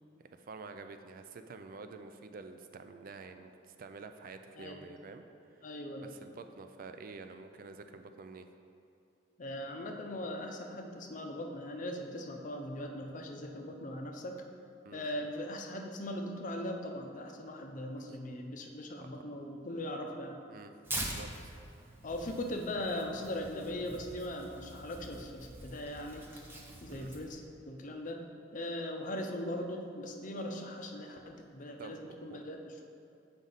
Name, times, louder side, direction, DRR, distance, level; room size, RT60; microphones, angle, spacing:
voice 1, 0.2-5.2 6.0-8.5 14.8-15.0 18.0-18.2 19.0-19.1 20.5-21.5 26.9-27.1 31.8-32.4, right 4 dB, 50° right, 8 dB, 0.4 m, -49 dB
voice 2, 5.6-6.1 9.4-14.4 14.9-20.4 22.0-26.4 26.8-28.2 28.5-32.8, left 1 dB, 45° left, 3 dB, 0.6 m, -40 dB
Tearing, 20.8-27.3, right 1 dB, 10° right, 0.7 m, -44 dB
7.5 x 5.1 x 4.0 m, 2.6 s
head